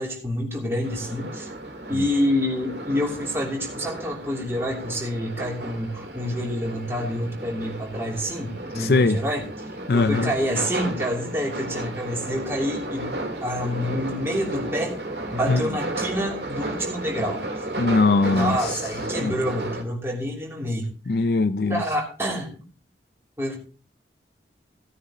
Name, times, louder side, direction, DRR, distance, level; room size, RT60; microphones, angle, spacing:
voice 1, 0.0-1.5 1.9-9.4 9.9-15.0 15.3-17.4 18.3-20.9 21.7-22.6 23.4-23.6, equal, 15° right, 3.1 m, -27 dB
sound 1, 0.8-19.8, right 1 dB, 65° right, 2.2 m, -33 dB
voice 2, 8.8-9.2 9.9-10.3 15.5-15.7 17.8-18.8 19.2-19.3 21.1-21.8, left 3 dB, 60° left, 0.5 m, -21 dB
17.5 x 9.7 x 3.0 m
head